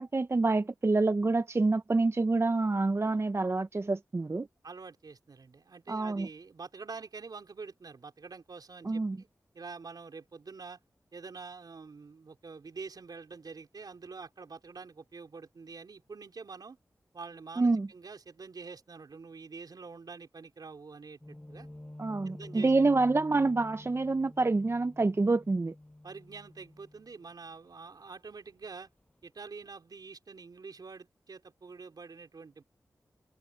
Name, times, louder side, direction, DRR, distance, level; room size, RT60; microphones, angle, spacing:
voice 1, 0.0-4.5 5.9-6.3 8.9-9.2 17.6-17.9 22.0-25.7, right 3 dB, 40° right, 0.6 m, -27 dB
voice 2, 4.6-9.3 9.5-10.8 11.1-16.8 17.1-21.7 22.2-22.8 26.0-28.9 29.2-32.6, right 4 dB, 70° right, 4.5 m, -46 dB
sound 1, 21.2-27.7 28.1-28.3 28.7-29.2 29.6-29.7, left 1 dB, 20° left, 7.1 m, -49 dB
cardioid pair, 45°, 7 cm